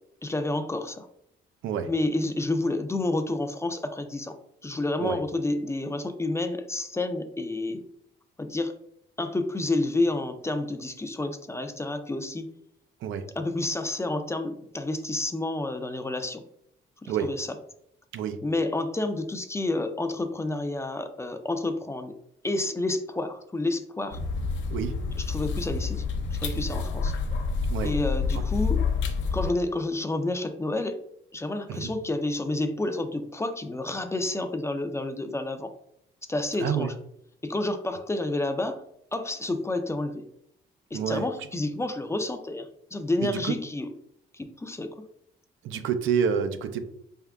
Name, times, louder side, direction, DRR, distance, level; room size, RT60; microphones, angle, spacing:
voice 1, 0.2-1.1 1.9-4.4 4.6-7.8 8.4-8.7 9.2-12.5 13.4-16.4 17.0-17.5 18.4-22.1 22.4-24.2 25.3-26.0 26.4-27.1 27.8-28.8 29.3-31.0 31.3-35.7 36.3-36.9 37.4-38.8 39.1-40.3 40.9-43.9 44.3-45.1, left 2 dB, 15° left, 8 dB, 0.4 m, -29 dB
sound 1, 24.1-29.5, left 4 dB, 70° left, 0.6 m, -28 dB
voice 2, 36.6-36.9 40.9-41.3 43.2-43.5 45.6-46.9, right 7 dB, 80° right, 9 dB, 0.4 m, -28 dB
4.3 x 3.6 x 2.3 m, 0.74 s
cardioid pair, 90°, 20 cm